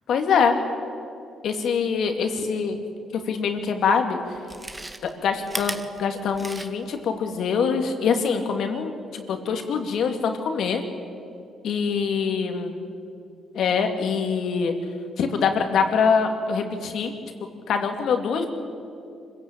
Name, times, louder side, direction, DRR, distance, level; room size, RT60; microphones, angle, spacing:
voice 1, 0.1-0.6 1.4-2.8 3.3-4.2 5.0-10.8 11.6-12.7 13.5-14.7 15.2-17.1 17.7-18.5, left 6 dB, 70° left, 5 dB, 2.5 m, -24 dB
Chewing mastication, 3.6-3.7 4.3-7.0 7.4-7.5, right 2 dB, 15° right, 1.4 m, -35 dB
25.5 x 16.0 x 8.8 m, 2.5 s
cardioid pair, 90°, 0 cm